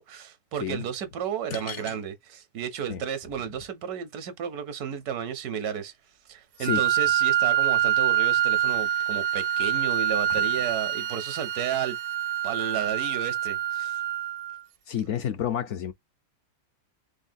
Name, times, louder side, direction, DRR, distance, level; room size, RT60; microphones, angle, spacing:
voice 1, 0.0-5.9 6.3-12.0 12.4-14.0, right 8 dB, 80° right, 1.3 m, -33 dB
voice 2, 1.5-2.0 2.9-3.0 6.6-6.8 14.9-15.9, left 9 dB, 65° left, 0.7 m, -30 dB
Wind instrument woodwind instrument, 6.6-14.6, right 10 dB, 65° right, 0.7 m, -26 dB
3.9 x 3.6 x 2.5 m
omnidirectional pair, 1.6 m